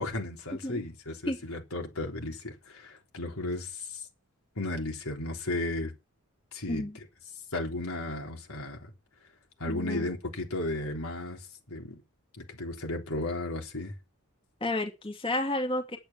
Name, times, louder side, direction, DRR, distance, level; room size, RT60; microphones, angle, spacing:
voice 1, 0.0-4.0 4.6-5.9 6.5-6.9 7.5-8.9 9.6-12.0 12.4-14.0, left 2 dB, 75° left, 3.5 m, -34 dB
voice 2, 6.7-7.0 9.7-10.1 14.6-16.0, left 1 dB, 25° left, 2.4 m, -31 dB
10.5 x 8.9 x 7.2 m
head